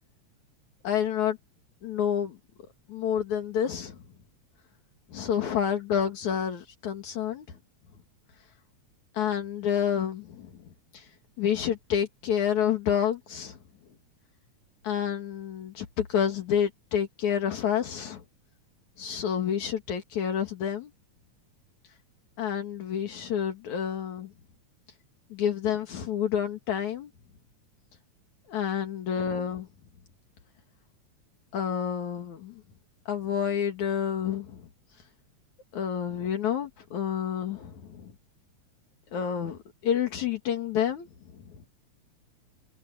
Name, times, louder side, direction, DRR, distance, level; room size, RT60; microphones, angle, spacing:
voice 1, 0.8-1.4 1.8-2.4 2.9-4.0 5.1-7.5 9.1-10.5 10.9-11.1 11.4-13.6 14.8-18.2 19.0-20.9 22.4-24.3 25.3-27.1 28.5-29.7 31.5-32.5 33.1-34.6 35.7-38.1 39.1-41.1 41.3-41.4, left 8 dB, 75° left, 3.3 m, -29 dB
omnidirectional pair, 3.4 m